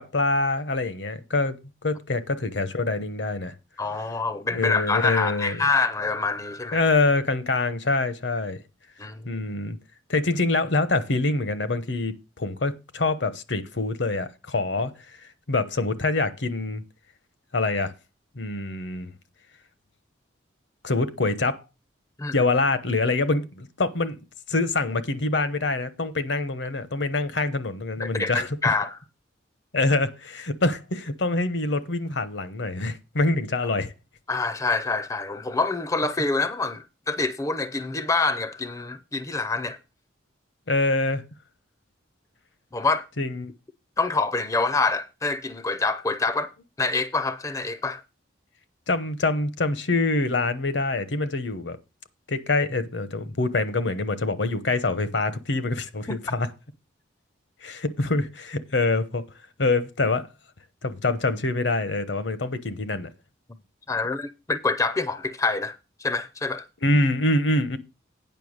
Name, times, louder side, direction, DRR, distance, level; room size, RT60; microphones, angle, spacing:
voice 1, 0.0-3.5 4.5-5.6 6.7-8.6 9.2-9.8 10.1-16.8 17.5-17.9 18.4-19.1 20.8-21.6 22.3-24.2 24.5-28.7 29.7-33.9 40.7-41.2 43.2-43.5 48.9-51.8 52.3-56.5 57.6-59.2 59.6-60.3 60.8-63.1 66.8-67.8, left 2 dB, 65° left, 0.9 m, -25 dB
voice 2, 3.8-6.8 9.0-9.4 22.2-22.3 28.0-29.0 34.3-39.8 42.7-43.0 44.0-46.5 46.8-48.0 56.1-56.2 63.9-66.6, left 3 dB, 15° left, 0.5 m, -26 dB
9.1 x 5.6 x 6.4 m
head